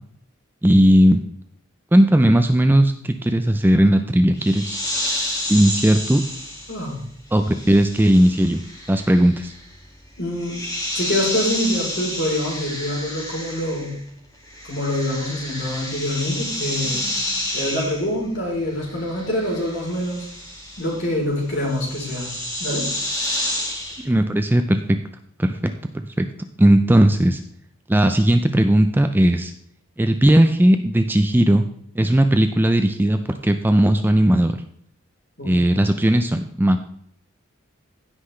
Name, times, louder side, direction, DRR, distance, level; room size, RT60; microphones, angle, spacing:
voice 1, 0.6-1.2 1.9-4.8 5.5-6.2 7.3-8.6 8.9-9.5 24.0-25.0 25.4-26.3 26.6-27.4 27.9-29.5 30.0-31.6 32.0-34.6 35.5-36.8, right 1 dB, 10° right, 7 dB, 0.4 m, -17 dB
sound 1, 4.4-14.1 14.3-24.1, left 1 dB, 15° left, 2.0 m, -30 dB
voice 2, 6.7-7.0 10.2-10.6 10.9-14.0 14.7-17.0 17.5-20.3 20.8-22.3 22.6-22.9 35.4-35.5, left 1 dB, 55° left, -2 dB, 3.5 m, -25 dB
16.0 x 5.7 x 3.2 m, 0.68 s
head